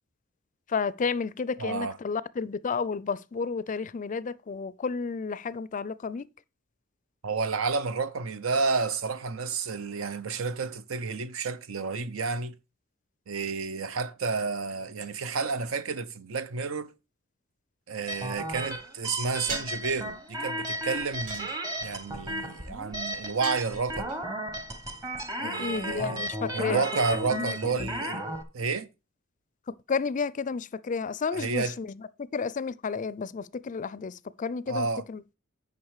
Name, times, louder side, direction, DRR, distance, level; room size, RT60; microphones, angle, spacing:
voice 1, 0.7-6.2 25.4-26.8 27.3-27.7 29.9-31.9 32.3-35.2, left 5 dB, 40° left, 0.4 m, -31 dB
voice 2, 1.6-2.0 7.2-12.5 13.3-16.9 17.9-21.5 21.8-24.2 25.4-28.2 28.5-28.9 31.3-31.8 34.7-35.1, right 4 dB, 80° right, 0.7 m, -31 dB
sound 1, 18.1-28.4, right 1 dB, 20° right, 1.0 m, -34 dB
sound 2, 19.5-19.9 21.3-22.0 23.4-24.2, right 4 dB, 40° right, 5.6 m, -38 dB
9.5 x 5.3 x 4.8 m
head